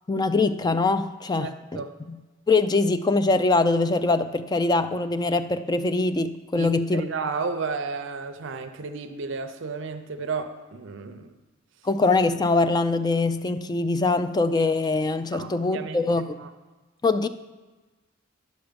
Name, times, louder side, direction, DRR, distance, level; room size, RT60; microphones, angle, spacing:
voice 1, 0.1-2.2 2.5-7.0 11.8-16.4 17.0-17.3, left 3 dB, 20° left, 11 dB, 0.3 m, -23 dB
voice 2, 1.4-1.9 6.6-11.3 15.3-16.5, right 4 dB, 65° right, 7 dB, 0.6 m, -33 dB
10.5 x 7.0 x 5.1 m, 1.2 s
head